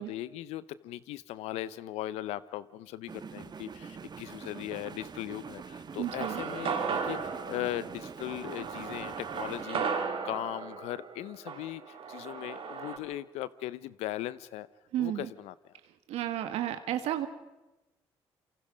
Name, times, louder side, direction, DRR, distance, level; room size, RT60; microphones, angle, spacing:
voice 1, 0.0-9.9 10.2-14.7 15.0-15.5, left 14 dB, 85° left, 17 dB, 0.7 m, -38 dB
sound 1, 3.1-9.7, right 5 dB, 40° right, 1.4 m, -45 dB
voice 2, 6.0-6.4 14.9-15.3 16.1-17.3, right 12 dB, 80° right, 9 dB, 1.6 m, -32 dB
sound 2, 6.1-13.0, right 6 dB, 65° right, 3.5 m, -36 dB
27.5 x 24.0 x 5.2 m, 1.0 s
supercardioid pair, 65°, 11 cm